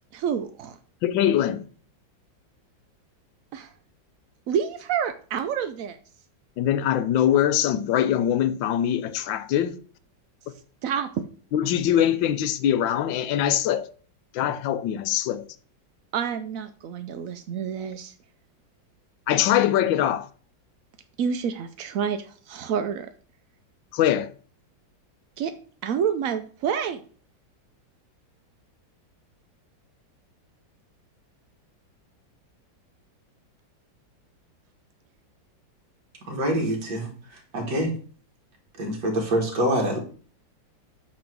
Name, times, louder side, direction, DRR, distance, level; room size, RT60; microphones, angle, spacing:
voice 1, 0.1-0.8 3.5-3.7 4.5-6.0 10.8-11.1 16.1-18.1 21.2-23.1 25.4-25.5 25.8-27.0, right 7 dB, 80° right, 0.7 m, -28 dB
voice 2, 1.0-1.6 6.6-9.7 11.5-13.9 14.4-15.4 19.3-20.2 24.0-24.3, left 10 dB, 80° left, 1.4 m, -22 dB
voice 3, 36.3-37.1 37.5-37.9 38.8-40.0, right 1 dB, 60° right, 2.4 m, -25 dB
8.7 x 3.1 x 6.1 m
omnidirectional pair, 2.0 m